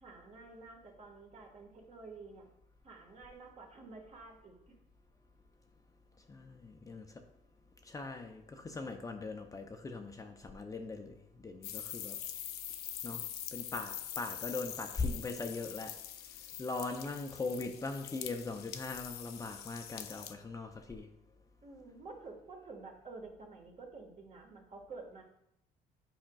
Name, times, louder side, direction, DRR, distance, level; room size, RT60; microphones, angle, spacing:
voice 1, 0.0-2.4 2.8-4.7 21.6-25.2, right 3 dB, 40° right, 1 dB, 1.5 m, -50 dB
voice 2, 6.3-7.2 7.8-12.2 13.0-13.2 13.5-16.0 16.6-21.1, left 3 dB, 20° left, 4 dB, 0.5 m, -40 dB
sound 1, 11.6-20.3, left 10 dB, 70° left, 0.5 m, -44 dB
8.7 x 4.9 x 2.3 m, 0.77 s
cardioid pair, 110°, 17 cm